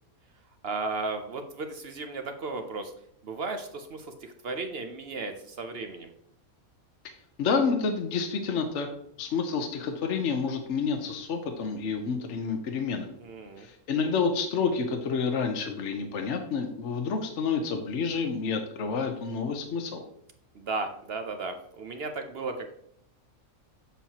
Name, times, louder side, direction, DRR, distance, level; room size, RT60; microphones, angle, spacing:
voice 1, 0.6-2.9 3.2-6.1 13.2-13.7 20.5-22.7, right 3 dB, 55° right, 7 dB, 0.7 m, -35 dB
voice 2, 7.4-8.9 9.2-13.1 13.6-20.0, left 5 dB, 60° left, 5 dB, 1.0 m, -29 dB
7.3 x 7.2 x 2.8 m, 0.74 s
omnidirectional pair, 1.5 m